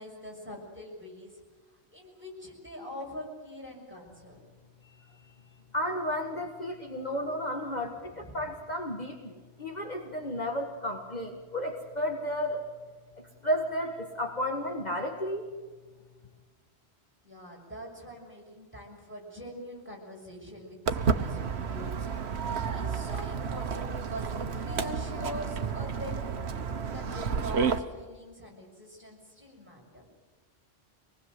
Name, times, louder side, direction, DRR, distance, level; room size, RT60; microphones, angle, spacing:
voice 1, 0.0-1.4 1.7-4.5 7.1-7.3 8.0-8.5 17.2-26.3 26.8-30.1, equal, 10° right, -2 dB, 6.3 m, -43 dB
voice 2, 5.7-12.6 13.4-15.5, equal, 40° left, 2 dB, 1.8 m, -32 dB
Walk footsteps, 20.9-27.8, right 6 dB, 75° right, 1.3 m, -31 dB
25.0 x 19.5 x 7.8 m, 1.4 s
omnidirectional pair, 1.1 m